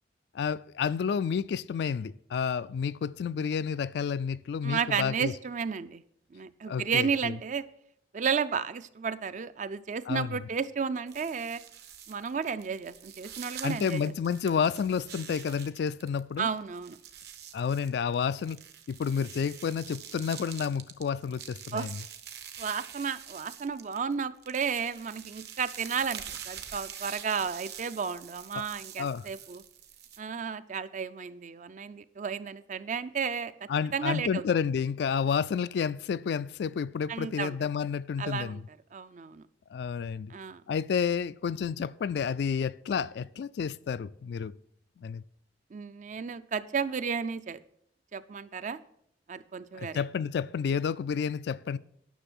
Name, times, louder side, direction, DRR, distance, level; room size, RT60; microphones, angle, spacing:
voice 1, 0.3-5.3 6.7-7.3 10.1-10.4 13.6-16.5 17.5-18.6 18.9-22.0 28.6-28.7 29.0-29.3 33.7-38.6 39.7-40.3 40.7-44.5 45.0-45.2 49.7-51.8, left 6 dB, 65° left, 0.3 m, -30 dB
voice 2, 4.6-6.0 6.3-7.6 8.1-11.6 12.1-14.1 16.4-17.0 21.7-21.9 22.6-29.6 30.2-33.5 33.9-34.4 37.1-37.7 38.2-38.6 38.9-39.4 40.3-40.6 45.7-47.6 48.1-48.8 49.3-50.0, right 6 dB, 40° right, 0.4 m, -33 dB
sound 1, 11.1-16.2 16.5-24.1 24.4-30.2, right 9 dB, 60° right, 1.0 m, -45 dB
10.0 x 6.2 x 6.1 m
head